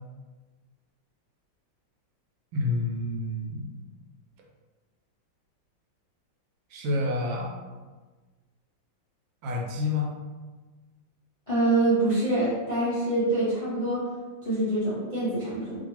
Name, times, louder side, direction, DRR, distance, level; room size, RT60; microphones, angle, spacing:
voice 1, 2.5-3.7 6.7-7.5 9.4-10.2, left 2 dB, 80° right, -1 dB, 1.3 m, -28 dB
voice 2, 11.5-14.0 14.4-15.8, right 2 dB, 50° left, -11 dB, 0.4 m, -25 dB
2.9 x 2.7 x 2.8 m, 1.3 s
omnidirectional pair, 2.1 m